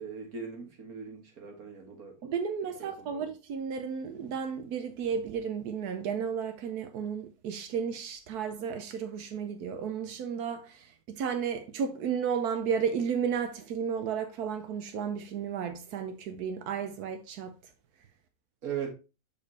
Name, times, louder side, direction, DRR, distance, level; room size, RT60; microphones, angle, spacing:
voice 1, 0.0-2.2 2.8-3.2 18.6-18.9, right 7 dB, 65° right, 2.2 m, -39 dB
voice 2, 2.2-17.5, right 7 dB, 85° right, 1.3 m, -33 dB
6.7 x 4.9 x 4.0 m
omnidirectional pair, 1.6 m